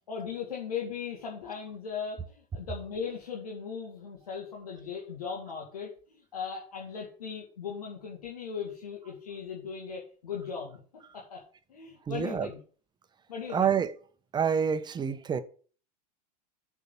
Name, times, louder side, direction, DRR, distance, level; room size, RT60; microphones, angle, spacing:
voice 1, 0.1-10.8 11.1-11.4 11.7-12.6 13.3-13.7, left 6 dB, 85° left, 2.0 m, -38 dB
voice 2, 12.1-12.5 13.5-13.9 14.3-15.4, right 7 dB, 25° right, 0.9 m, -27 dB
6.7 x 4.8 x 7.0 m
hypercardioid pair, 90°, 19 cm